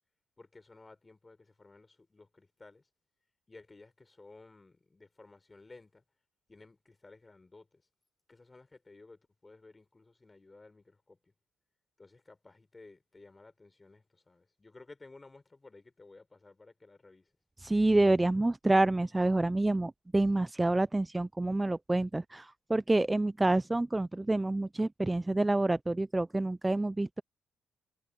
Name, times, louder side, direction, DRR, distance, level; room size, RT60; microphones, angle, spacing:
voice 1, 0.4-2.9 3.5-6.0 6.5-7.8 8.3-11.3 12.0-17.3, left 3 dB, 20° left, 6.0 m, -56 dB
voice 2, 17.6-27.2, right 2 dB, 15° right, 0.3 m, -28 dB
cardioid pair, 90°, 0 cm